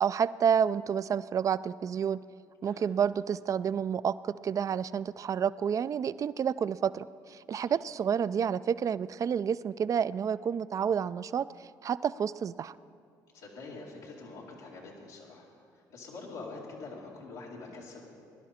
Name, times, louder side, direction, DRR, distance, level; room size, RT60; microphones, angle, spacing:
voice 1, 0.0-2.2 2.6-11.5 11.8-12.7, right 7 dB, 40° right, 16 dB, 0.4 m, -29 dB
voice 2, 13.3-18.0, left 3 dB, 90° left, -5 dB, 2.2 m, -45 dB
20.0 x 11.0 x 4.3 m, 2.4 s
supercardioid pair, 75°, 8 cm